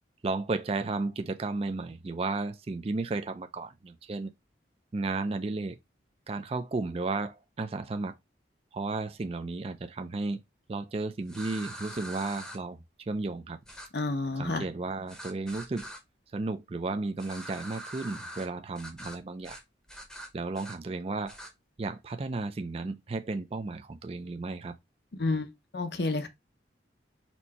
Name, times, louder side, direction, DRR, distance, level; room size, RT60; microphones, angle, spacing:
voice 1, 0.2-4.3 4.9-5.8 6.3-8.2 8.7-10.4 10.7-13.6 14.4-15.9 16.3-19.6 20.3-21.4 21.8-24.8, right 3 dB, 30° right, 0.4 m, -33 dB
sound 1, 11.3-12.6 13.7-13.9 15.1-16.0 17.2-18.5 18.8-19.2 19.4-19.6 19.9-20.8 21.3-21.5, equal, 5° left, 0.8 m, -43 dB
voice 2, 13.9-14.6 25.2-25.5 25.7-26.3, left 3 dB, 60° left, 0.8 m, -29 dB
4.3 x 2.7 x 4.1 m
head